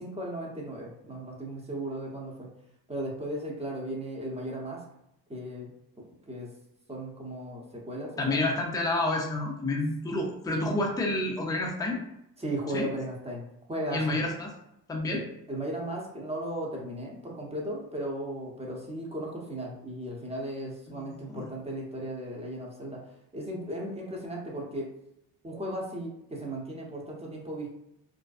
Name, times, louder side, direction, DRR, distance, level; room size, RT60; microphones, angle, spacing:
voice 1, 0.0-2.5 2.9-4.8 5.3-5.7 6.3-6.5 6.9-8.4 12.4-13.4 13.7-14.2 15.1-23.0 23.3-24.9 25.4-27.7, right 1 dB, 15° right, -2 dB, 0.8 m, -36 dB
voice 2, 8.2-12.0 12.7-12.9 13.9-14.5 14.9-15.2 20.9-21.5, left 2 dB, 10° left, -1 dB, 0.5 m, -29 dB
2.6 x 2.1 x 2.4 m, 0.81 s
supercardioid pair, 70°, 43 cm